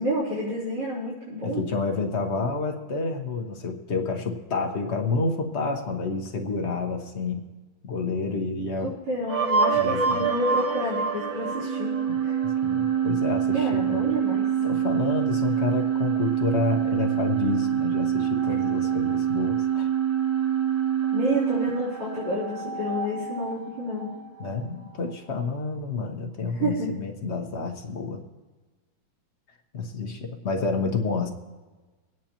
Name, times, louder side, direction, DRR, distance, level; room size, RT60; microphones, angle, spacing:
voice 1, 0.0-1.6 8.8-11.9 12.2-12.4 13.5-14.5 21.1-24.1 26.6-26.9, equal, 80° right, -11 dB, 4.3 m, -29 dB
voice 2, 1.4-7.5 7.8-8.9 9.8-10.3 12.1-12.2 12.6-14.1 14.6-19.9 24.4-28.2 29.7-31.3, left 4 dB, 40° left, 2 dB, 1.1 m, -29 dB
sound 1, 9.3-25.1, right 8 dB, 55° right, 1.2 m, -26 dB
25.0 x 9.3 x 2.9 m, 1.3 s
omnidirectional pair, 2.3 m